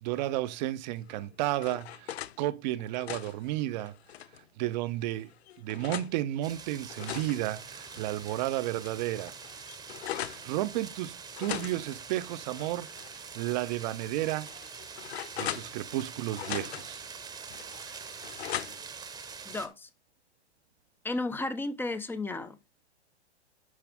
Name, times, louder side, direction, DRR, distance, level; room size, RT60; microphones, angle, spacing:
voice 1, 0.0-3.9 4.6-5.3 5.6-9.3 10.2-14.5 15.4-17.1, right 15 dB, 40° right, 0.7 m, -32 dB
sound 1, 1.1-2.4 2.8-4.4 5.0-6.1 6.7-8.5 8.8-8.9 9.2-10.5 11.3-13.2 13.5-13.6 14.2-16.1 16.3-17.0 17.5-19.0, left 12 dB, 65° left, 0.6 m, -40 dB
sound 2, 6.4-19.7, right 5 dB, 10° right, 1.0 m, -45 dB
voice 2, 19.4-19.9 21.0-22.6, left 2 dB, 5° left, 0.6 m, -33 dB
11.0 x 4.9 x 3.5 m
hypercardioid pair, 115°, 35 cm